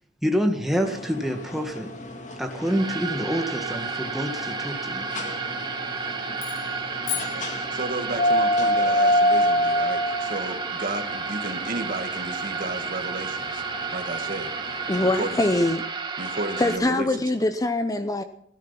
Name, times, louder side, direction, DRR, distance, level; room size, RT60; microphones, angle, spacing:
voice 1, 0.2-1.9 2.4-5.1, equal, ahead, 2 dB, 2.0 m, -27 dB
sound 1, 0.8-15.7, equal, 40° left, 2.1 m, -29 dB
sound 2, 2.6-16.8, right 4 dB, 25° right, 2.0 m, -32 dB
sound 3, 6.4-8.3, left 11 dB, 65° left, 3.3 m, -36 dB
voice 2, 7.1-13.6 13.9-15.4 16.2-17.1 17.4-17.5, right 2 dB, 50° right, 6 dB, 1.9 m, -33 dB
voice 3, 14.9-15.9 16.6-18.2, left 2 dB, 20° left, 9 dB, 0.7 m, -23 dB
16.0 x 13.5 x 5.9 m, 0.69 s
head